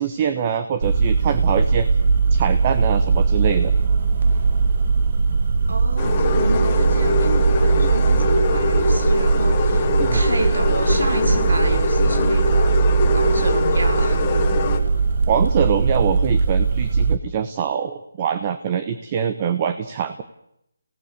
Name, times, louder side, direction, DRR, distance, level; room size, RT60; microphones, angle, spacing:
voice 1, 0.0-1.9 2.3-3.7 7.8-7.9 10.0-10.2 15.3-20.2, right 8 dB, 25° right, 10 dB, 1.2 m, -24 dB
sound 1, 0.8-17.2, right 4 dB, 45° right, 1.5 m, -19 dB
voice 2, 5.7-14.3, right 2 dB, 75° right, 7 dB, 4.0 m, -29 dB
sound 2, 6.0-14.8, left 4 dB, 25° left, 2.3 m, -23 dB
29.5 x 17.5 x 6.9 m, 0.80 s
hypercardioid pair, 165°, 0 cm